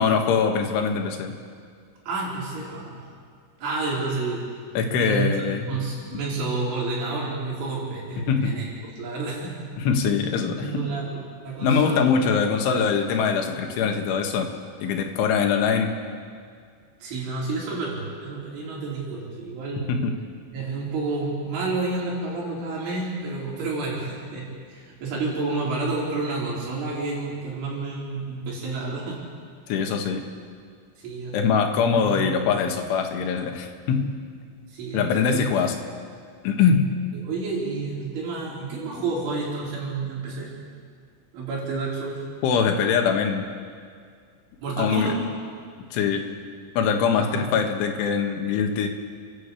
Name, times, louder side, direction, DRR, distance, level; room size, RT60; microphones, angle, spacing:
voice 1, 0.0-1.3 4.8-5.7 8.3-8.5 9.8-10.8 11.6-14.5 14.8-15.9 19.9-20.1 29.7-30.2 31.3-34.2 34.9-35.8 36.4-36.9 42.4-43.5 44.8-45.2 45.9-46.3 46.8-48.9, left 6 dB, 75° left, 3 dB, 4.1 m, -23 dB
voice 2, 2.1-3.1 3.6-4.4 4.9-5.4 5.7-8.7 9.0-9.7 10.6-12.1 17.0-20.0 20.5-29.2 31.0-31.4 31.9-32.4 34.7-35.5 37.1-40.5 41.3-42.2 44.6-45.2 47.1-47.5, right 3 dB, 75° right, -4 dB, 7.0 m, -30 dB
29.5 x 11.5 x 8.4 m, 2.1 s
omnidirectional pair, 5.6 m